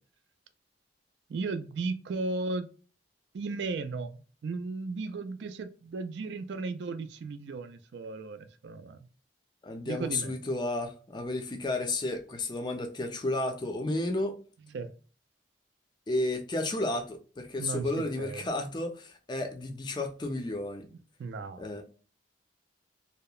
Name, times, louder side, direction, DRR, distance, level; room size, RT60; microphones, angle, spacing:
voice 1, 1.3-2.7 3.3-9.1 9.9-10.4 14.7-14.9 17.6-18.5 21.2-21.8, right 3 dB, 70° right, 0.3 m, -35 dB
voice 2, 9.6-14.4 16.1-20.9 21.6-21.8, left 2 dB, 25° left, 0.4 m, -32 dB
2.8 x 2.0 x 2.2 m
head